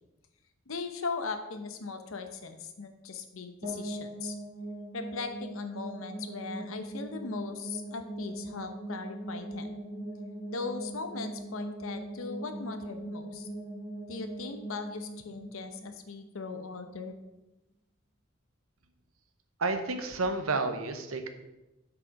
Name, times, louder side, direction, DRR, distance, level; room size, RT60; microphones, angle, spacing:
voice 1, 0.7-4.4 4.9-9.7 10.5-13.5 14.1-17.2, left 4 dB, 75° left, 7 dB, 0.8 m, -39 dB
sound 1, 3.6-16.5, right 1 dB, 35° right, 1.5 m, -40 dB
voice 2, 19.6-21.3, right 3 dB, 85° right, 7 dB, 0.9 m, -30 dB
7.1 x 4.9 x 5.2 m, 0.99 s
head